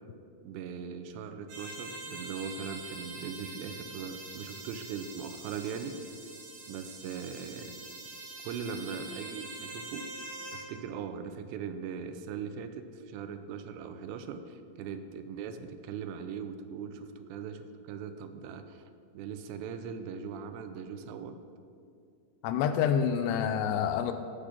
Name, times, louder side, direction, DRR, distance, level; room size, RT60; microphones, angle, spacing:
voice 1, 0.4-6.1 6.7-7.7 8.4-10.1 10.5-18.8 19.1-21.4, right 6 dB, 85° right, 9 dB, 2.9 m, -40 dB
sound 1, 1.5-10.6, right 2 dB, 70° right, 4.5 m, -44 dB
voice 2, 22.4-24.1, left 8 dB, 85° left, 8 dB, 2.7 m, -27 dB
15.0 x 5.1 x 6.0 m, 2.4 s
omnidirectional pair, 5.0 m